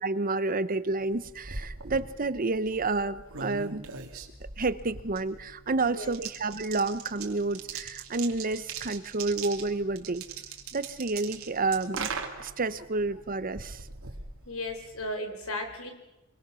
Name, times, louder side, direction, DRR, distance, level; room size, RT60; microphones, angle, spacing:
voice 1, 0.0-3.8 4.6-10.2 10.7-12.1 12.4-13.9, right 3 dB, 40° right, 14 dB, 0.9 m, -30 dB
sound 1, 1.0-15.1, right 5 dB, 80° right, 2.6 m, -41 dB
voice 2, 5.7-6.1 14.5-15.9, left 1 dB, 80° left, 5 dB, 4.5 m, -35 dB
25.0 x 23.5 x 6.3 m, 0.99 s
head